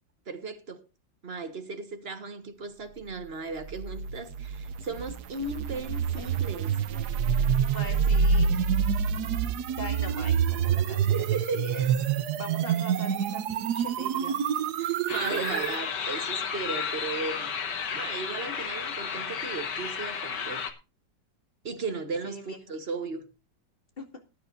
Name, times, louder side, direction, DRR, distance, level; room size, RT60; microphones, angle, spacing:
voice 1, 0.3-0.8 1.2-6.8 8.5-8.6 11.1-11.9 14.8-17.5 17.9-20.6 21.6-23.3, right 3 dB, 35° right, 1.4 m, -36 dB
sound 1, 3.7-15.8, right 7 dB, 65° right, 1.2 m, -27 dB
voice 2, 6.6-8.8 9.4-11.2 11.5-11.9 12.3-14.7 22.2-22.6 24.0-24.1, left 1 dB, 30° left, 2.5 m, -42 dB
sound 2, 15.1-20.7, left 6 dB, 70° left, 2.1 m, -33 dB
19.5 x 10.5 x 2.6 m
omnidirectional pair, 1.9 m